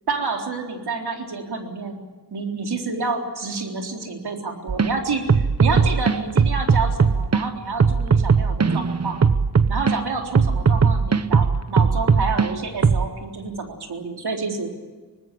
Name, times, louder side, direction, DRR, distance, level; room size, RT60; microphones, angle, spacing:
voice 1, 0.1-2.0 2.3-9.2 9.7-14.7, right 4 dB, 80° right, 3 dB, 4.0 m, -28 dB
sound 1, 4.7-4.9 5.3-7.4 7.8-10.0 10.3-12.5 12.8-13.1, right 5 dB, 40° right, 1.0 m, -18 dB
24.5 x 20.0 x 8.5 m, 1.3 s
wide cardioid pair, 100°, 38 cm